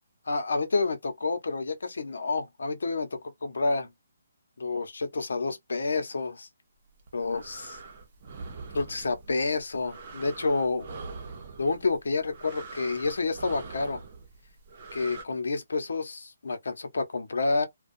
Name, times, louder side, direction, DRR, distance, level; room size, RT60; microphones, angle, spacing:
voice 1, 0.3-3.9 4.6-6.5 7.1-7.8 8.7-10.9 11.6-14.0 14.9-17.7, left 3 dB, 80° left, 0.8 m, -29 dB
sound 1, 6.9-15.2, right 4 dB, 40° right, 0.7 m, -43 dB
2.3 x 2.3 x 2.5 m
hypercardioid pair, 165°, 0 cm